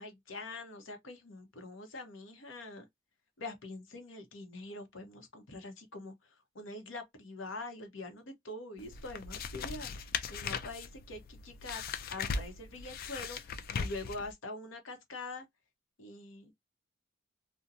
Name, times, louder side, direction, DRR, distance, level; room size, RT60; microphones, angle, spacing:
voice 1, 0.0-2.9 3.4-6.1 6.5-11.8 12.1-15.5 16.0-16.5, left 2 dB, 75° left, 0.8 m, -44 dB
sound 1, 8.8-14.3, left 5 dB, 50° left, 0.3 m, -39 dB
2.7 x 2.1 x 2.5 m
head